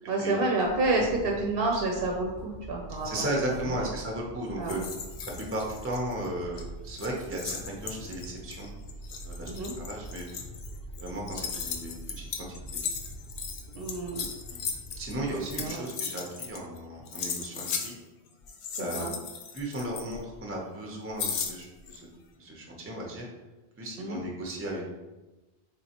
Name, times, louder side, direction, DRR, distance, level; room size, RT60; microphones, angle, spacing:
voice 1, 0.1-3.3 3.6-3.7 4.6-4.8 9.5-9.7 13.7-14.3 15.6-15.9 18.7-19.1 24.0-24.2, right 2 dB, 65° right, 1 dB, 0.7 m, -29 dB
sound 1, 0.6-15.7, right 1 dB, 90° left, 1.0 m, -45 dB
voice 2, 3.0-4.8 5.4-8.7 9.2-9.5 9.8-10.2 11.0-12.8 14.5-14.6 15.0-18.0 18.8-19.1 19.5-22.0 22.4-23.3 23.8-24.9, right 1 dB, 20° right, -1 dB, 0.5 m, -35 dB
sound 2, 4.7-6.3 6.5-6.6 6.9-16.8 17.1-17.9 18.4-20.4 21.2-22.0, left 6 dB, 65° left, 0.7 m, -37 dB
4.1 x 3.5 x 2.8 m, 1.1 s
omnidirectional pair, 1.1 m